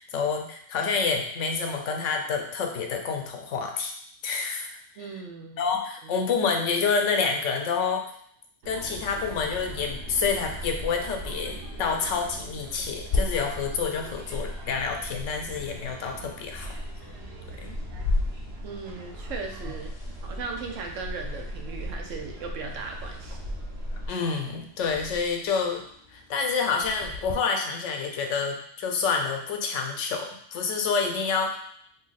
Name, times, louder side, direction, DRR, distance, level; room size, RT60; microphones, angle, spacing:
voice 1, 0.0-3.9 4.2-4.7 5.0-5.1 5.6-8.1 8.7-16.7 17.6-17.8 24.1-25.8 26.1-31.6, left 5 dB, 90° left, 4 dB, 0.9 m, -28 dB
voice 2, 5.0-5.6 6.0-6.2 18.6-19.9 20.2-23.4, right 4 dB, 85° right, 2 dB, 1.0 m, -37 dB
sound 1, 8.6-24.1, equal, 60° right, 1.0 m, -38 dB
sound 2, 13.1-27.3, left 2 dB, 55° left, 0.6 m, -37 dB
2.8 x 2.7 x 3.9 m, 0.63 s
omnidirectional pair, 1.3 m